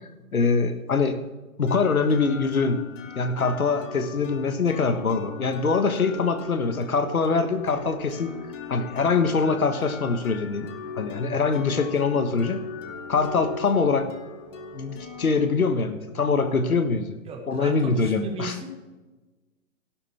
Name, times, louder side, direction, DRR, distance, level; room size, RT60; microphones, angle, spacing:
voice 1, 0.3-1.2 1.6-2.8 3.1-8.3 8.7-10.7 11.0-12.6 13.1-14.1 14.7-17.2 17.5-18.5, left 4 dB, 85° left, 8 dB, 1.5 m, -23 dB
sound 1, 1.7-17.3, left 5 dB, 60° left, 2.4 m, -40 dB
voice 2, 17.2-18.7, right 2 dB, 15° right, 2 dB, 1.6 m, -35 dB
12.5 x 12.0 x 3.5 m, 1.2 s
hypercardioid pair, 125°, 42 cm